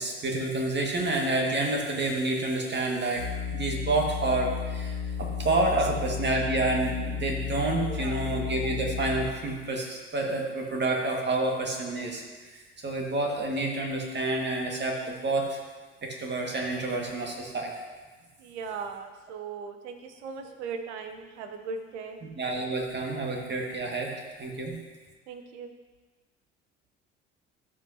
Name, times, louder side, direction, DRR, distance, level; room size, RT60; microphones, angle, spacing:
voice 1, 0.0-3.3 3.5-12.2 12.5-15.6 16.0-17.7 22.2-24.1 24.4-24.7, right 2 dB, 30° right, 0 dB, 1.8 m, -29 dB
sound 1, 3.2-9.6, left 7 dB, 85° left, 2.1 m, -33 dB
voice 2, 7.9-8.2 18.4-22.2 25.3-25.7, right 5 dB, 70° right, 7 dB, 0.9 m, -38 dB
13.0 x 5.7 x 2.8 m, 1.3 s
figure-of-eight pair, 55°, 35 cm